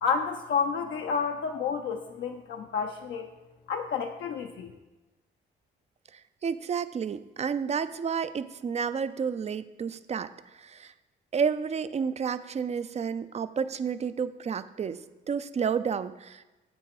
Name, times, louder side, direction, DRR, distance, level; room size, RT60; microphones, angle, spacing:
voice 1, 0.0-3.3 3.7-4.7, left 6 dB, 65° left, 2 dB, 0.6 m, -30 dB
voice 2, 6.1-10.9 11.3-15.0 15.3-16.5, right 6 dB, 35° right, 14 dB, 0.4 m, -31 dB
8.0 x 6.2 x 4.9 m, 1.1 s
cardioid pair, 90°, 20 cm